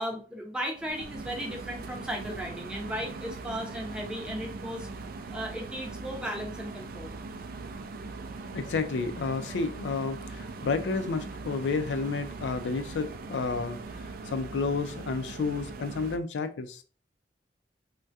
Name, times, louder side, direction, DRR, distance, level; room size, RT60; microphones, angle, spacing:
voice 1, 0.0-4.9 5.3-7.1, equal, 5° right, 0.6 m, -36 dB
sound 1, 0.8-16.2, right 3 dB, 55° right, 0.3 m, -41 dB
voice 2, 8.5-13.8 14.3-16.8, left 4 dB, 85° left, 0.4 m, -31 dB
3.4 x 2.2 x 2.6 m
head